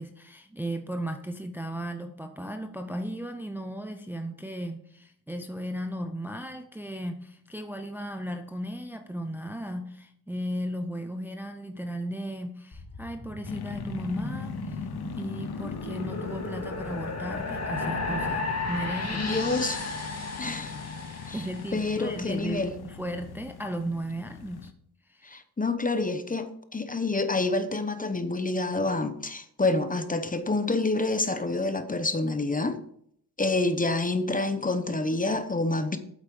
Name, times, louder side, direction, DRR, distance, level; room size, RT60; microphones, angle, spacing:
voice 1, 0.0-14.9 15.2-19.4 20.7-20.8 21.1-24.7 25.1-25.4, right 1 dB, 5° right, 0.7 m, -36 dB
sound 1, 12.7-22.1, left 3 dB, 40° left, 2.0 m, -35 dB
sound 2, 13.4-24.7, left 6 dB, 70° left, 0.9 m, -40 dB
voice 2, 19.2-19.8 20.4-20.7 21.3-21.4 21.7-22.7 25.2-32.8 33.4-36.0, left 2 dB, 20° left, 0.9 m, -27 dB
8.3 x 8.1 x 5.4 m
wide cardioid pair, 115°, 40 cm